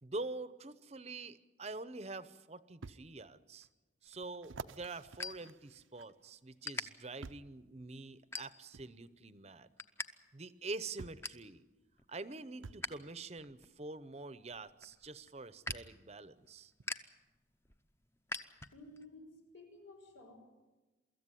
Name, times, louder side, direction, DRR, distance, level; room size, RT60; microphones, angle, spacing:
voice 1, 0.0-3.7 4.0-9.7 10.3-11.6 12.1-16.7, right 3 dB, 35° right, 14 dB, 0.7 m, -46 dB
sound 1, 2.8-3.0 3.6-3.7 4.4-6.3 7.2-7.6 8.7-8.9 10.2-10.3 11.0-11.3 12.6-12.9 14.5-14.6 15.7-16.0 16.8-16.9, right 4 dB, 90° right, 0.6 m, -50 dB
sound 2, 4.0-6.1 6.4-6.8 7.4-7.6 8.2-8.9 9.3-10.1 10.4-10.5 10.8-11.5 11.9-12.9 13.3-19.0, left 2 dB, 15° left, 0.7 m, -45 dB
voice 2, 18.7-20.4, left 2 dB, 90° left, 4 dB, 5.6 m, -54 dB
24.0 x 14.0 x 9.9 m, 1.2 s
head